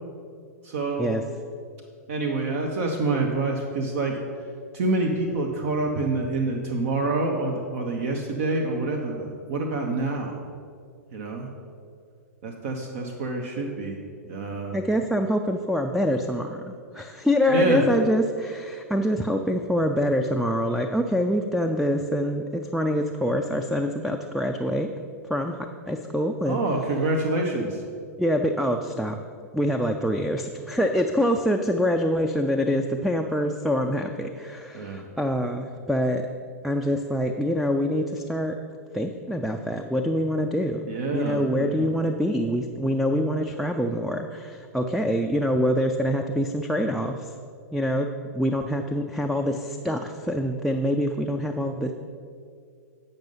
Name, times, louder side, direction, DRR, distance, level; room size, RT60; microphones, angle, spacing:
voice 1, 0.6-1.2 2.1-4.2 4.7-10.4 11.1-11.5 12.4-14.0 14.3-14.8 17.5-17.9 26.4-27.8 34.7-35.1 40.9-41.9, right 2 dB, 60° right, 1 dB, 1.0 m, -27 dB
voice 2, 14.7-24.9 25.3-26.6 28.2-29.2 29.5-36.2 36.6-38.6 38.9-47.3 47.7-48.1 48.3-51.9, equal, ahead, 4 dB, 0.4 m, -25 dB
8.9 x 5.4 x 5.5 m, 2.3 s
hypercardioid pair, 110°, 9 cm